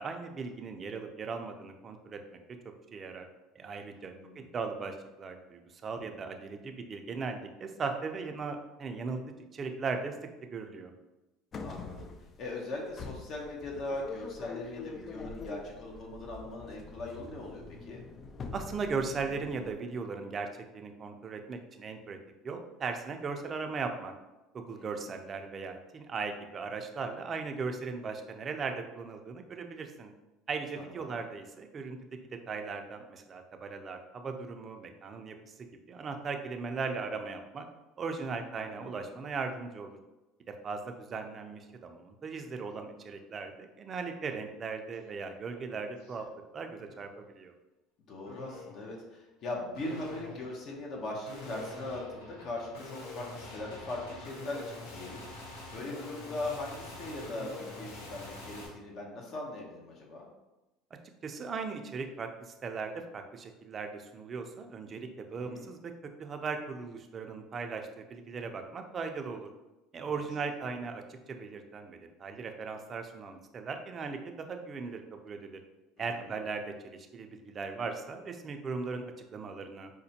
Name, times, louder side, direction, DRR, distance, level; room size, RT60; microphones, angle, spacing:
voice 1, 0.0-2.2 2.9-3.3 3.6-9.2 9.5-10.1 10.5-10.9 18.5-20.5 20.7-22.2 22.4-24.1 24.5-30.1 30.5-32.0 32.5-37.7 38.0-40.0 40.5-46.2 46.5-47.5 61.2-65.9 66.2-69.5 69.9-75.6 76.0-79.9, right 4 dB, 35° right, 5 dB, 0.4 m, -38 dB
voice 2, 4.1-4.5 11.6-12.1 12.4-18.0 24.8-25.1 30.8-31.1 38.6-39.1 48.1-60.3 65.4-65.7 70.1-70.3 76.0-76.4, left 2 dB, 55° left, -1 dB, 0.8 m, -40 dB
sound 1, 11.5-19.7, left 4 dB, 35° left, 0.3 m, -45 dB
sound 2, 44.9-45.1 45.5-46.2 46.8-47.2 48.3-48.9 49.7-58.7, left 2 dB, 85° left, 0.8 m, -46 dB
5.0 x 2.1 x 2.8 m, 1.0 s
supercardioid pair, 100°, 0 cm